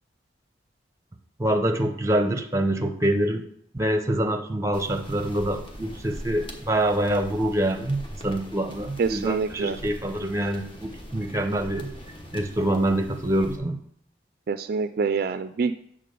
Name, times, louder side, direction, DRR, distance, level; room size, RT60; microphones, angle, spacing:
voice 1, 1.4-3.4 3.7-11.9 12.3-13.8, right 1 dB, 15° right, 6 dB, 0.7 m, -25 dB
sound 1, 4.7-13.6, equal, 30° left, 1.2 m, -42 dB
voice 2, 9.0-9.8 14.5-15.7, right 5 dB, 55° right, 10 dB, 0.3 m, -26 dB
8.4 x 3.8 x 6.7 m, 0.65 s
head